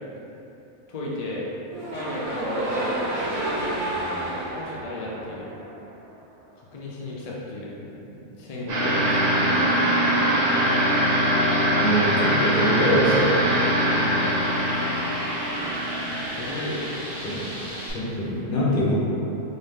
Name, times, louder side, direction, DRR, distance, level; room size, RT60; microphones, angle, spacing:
voice 1, 0.9-1.4 1.9-2.9 4.5-5.5 6.5-9.7 13.9-14.3 16.1-17.0, left 1 dB, 75° left, -5 dB, 0.3 m, -34 dB
sound 1, 1.7-5.9, right 1 dB, 85° right, 1.2 m, -29 dB
sound 2, 8.7-17.8, right 1 dB, 55° right, 0.9 m, -23 dB
sound 3, 11.0-17.9, equal, 5° right, 1.3 m, -37 dB
voice 2, 11.7-13.4 17.2-17.5 17.9-19.0, equal, 45° left, -7 dB, 0.9 m, -24 dB
3.7 x 2.7 x 3.6 m, 3.0 s
omnidirectional pair, 1.4 m